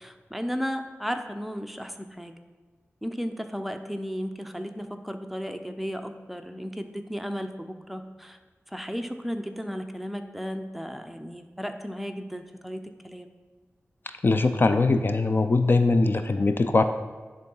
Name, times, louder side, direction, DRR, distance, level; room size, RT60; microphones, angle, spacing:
voice 1, 0.0-2.3 3.0-8.4 8.7-13.3, equal, ahead, 6 dB, 0.6 m, -34 dB
voice 2, 14.2-16.8, left 3 dB, 45° left, 8 dB, 0.4 m, -21 dB
10.0 x 3.7 x 5.5 m, 1.4 s
wide cardioid pair, 85°, 5 cm